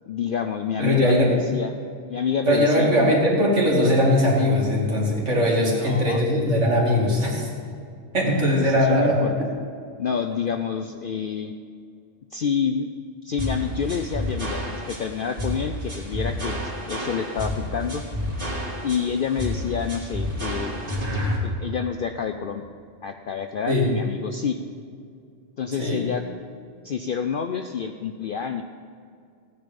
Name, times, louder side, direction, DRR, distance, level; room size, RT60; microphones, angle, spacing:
voice 1, 0.1-1.8 2.1-3.2 5.5-6.2 8.2-9.3 10.0-11.5 12.3-12.9 13.2-16.6 16.9-18.0 18.8-20.8 21.4-22.6 23.0-24.6 25.6-26.2 26.8-28.6, left 7 dB, 60° left, 7 dB, 0.5 m, -28 dB
voice 2, 0.8-1.3 2.5-7.5 8.1-9.5 23.7-23.9 25.8-26.0, equal, 65° right, -4 dB, 2.9 m, -20 dB
sound 1, 13.4-21.4, left 1 dB, 40° right, 2.7 m, -29 dB
16.0 x 9.6 x 5.2 m, 2.3 s
omnidirectional pair, 1.4 m